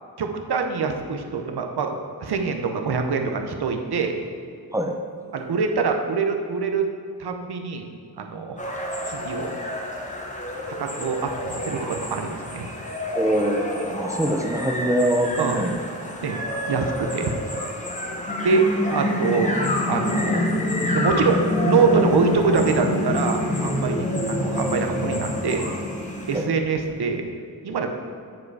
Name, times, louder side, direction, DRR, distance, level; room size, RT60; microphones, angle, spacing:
voice 1, 0.2-4.2 5.3-6.9 7.2-8.6 9.0-9.6 10.7-12.7 15.4-15.7 16.2-16.4 16.7-17.3 18.4-19.5 19.9-20.4 20.9-24.0 24.3-25.7 26.3-27.3 27.6-27.9, right 5 dB, 80° right, 4 dB, 0.8 m, -24 dB
sound 1, 8.6-26.4, left 1 dB, 20° left, 1.0 m, -27 dB
voice 2, 13.2-15.8 26.3-26.5, right 1 dB, 10° right, 3 dB, 0.6 m, -23 dB
9.2 x 5.0 x 4.7 m, 2.4 s
wide cardioid pair, 140°, 39 cm